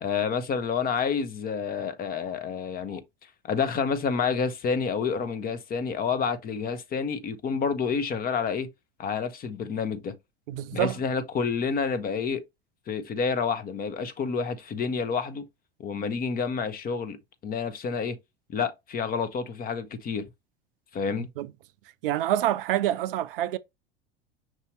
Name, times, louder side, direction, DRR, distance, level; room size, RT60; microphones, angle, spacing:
voice 1, 0.0-3.0 3.4-8.7 9.0-10.2 10.7-12.4 12.9-15.5 15.8-18.2 18.5-20.3 20.9-21.3, left 5 dB, 30° left, 0.8 m, -29 dB
voice 2, 10.5-11.0 21.4-21.5 22.0-23.6, right 13 dB, 65° right, 0.5 m, -26 dB
6.0 x 2.8 x 3.0 m
figure-of-eight pair, 80°, 30 cm